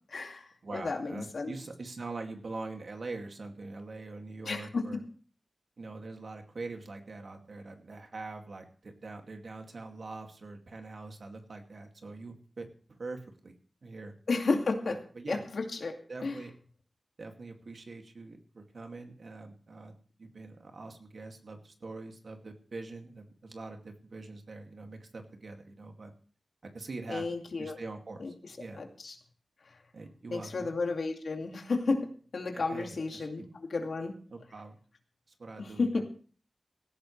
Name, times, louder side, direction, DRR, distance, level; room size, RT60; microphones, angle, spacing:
voice 1, 0.1-0.4 0.7-1.5 4.4-4.8 14.3-15.0 15.3-16.0 16.2-16.4 27.1-27.8 28.2-29.1 30.3-34.1 35.6-36.0, left 3 dB, 75° left, 3 dB, 2.4 m, -32 dB
voice 2, 0.6-5.0 5.8-12.7 13.0-13.5 13.8-14.1 14.8-15.4 16.1-16.5 17.2-26.1 26.7-27.2 27.6-28.8 29.9-30.7 32.5-33.5 34.3-34.8 35.4-35.9, right 3 dB, 65° right, 3 dB, 2.4 m, -43 dB
17.0 x 15.0 x 3.3 m, 0.43 s
wide cardioid pair, 85°, 0 cm